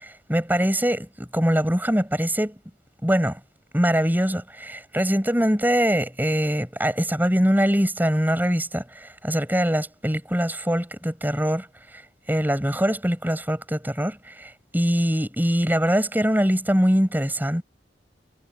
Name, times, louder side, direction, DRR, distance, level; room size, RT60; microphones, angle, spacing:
voice 1, 0.0-2.5 3.0-3.4 3.7-11.7 12.3-17.6, equal, 10° right, 6.1 m, -23 dB
head